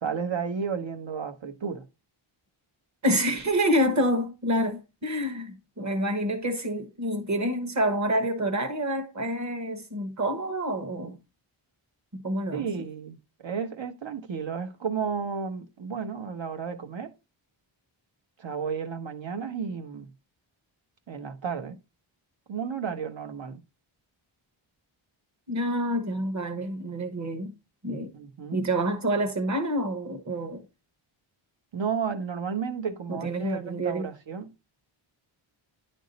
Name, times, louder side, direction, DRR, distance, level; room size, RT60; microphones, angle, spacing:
voice 1, 0.0-1.9 12.5-17.1 18.4-20.1 21.1-21.8 22.5-23.6 28.1-28.7 31.7-34.5, right 6 dB, 65° right, 1.1 m, -32 dB
voice 2, 3.0-11.2 12.1-12.7 25.5-27.5 27.8-28.1 28.5-30.6 33.1-34.1, equal, 35° right, 1.2 m, -28 dB
10.5 x 3.6 x 4.0 m
wide cardioid pair, 180°, 50 cm